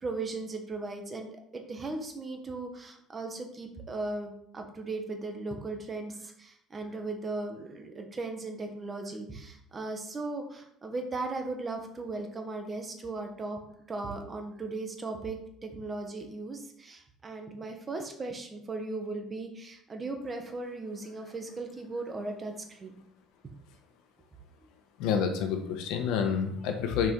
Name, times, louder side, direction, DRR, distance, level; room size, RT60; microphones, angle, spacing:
voice 1, 0.0-13.6 13.9-23.0 23.4-23.5, right 3 dB, 25° right, 4 dB, 1.2 m, -37 dB
voice 2, 25.0-27.1, left 7 dB, 75° left, 5 dB, 1.2 m, -28 dB
6.2 x 5.2 x 4.6 m, 0.72 s
cardioid pair, 135°, 0 cm